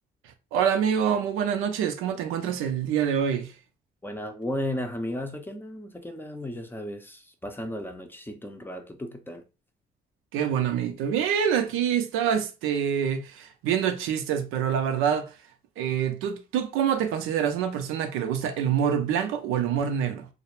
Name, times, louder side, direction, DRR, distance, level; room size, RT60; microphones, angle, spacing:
voice 1, 0.5-3.5 10.3-15.3 15.8-20.3, right 8 dB, 90° right, 0.4 m, -26 dB
voice 2, 4.0-9.4, left 1 dB, 10° left, 0.5 m, -34 dB
2.4 x 2.0 x 2.9 m
supercardioid pair, 75°, 21 cm